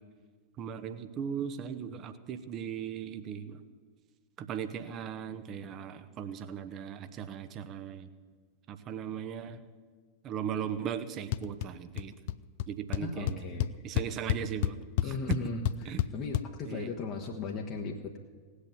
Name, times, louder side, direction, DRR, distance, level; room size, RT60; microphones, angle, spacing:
voice 1, 0.6-3.6 4.4-8.1 8.7-9.6 10.2-12.1 12.7-13.4 13.8-14.8 15.0-15.4 15.8-16.0 16.7-16.9, right 8 dB, 35° right, 11 dB, 1.1 m, -38 dB
sound 1, 11.3-11.7 11.9-12.3 12.6-12.7 12.9-16.4, left 14 dB, 50° left, 0.4 m, -30 dB
voice 2, 13.0-13.7 15.0-18.2, left 4 dB, 35° left, 0 dB, 1.3 m, -37 dB
18.0 x 8.3 x 9.3 m, 1.5 s
figure-of-eight pair, 90°, 0 cm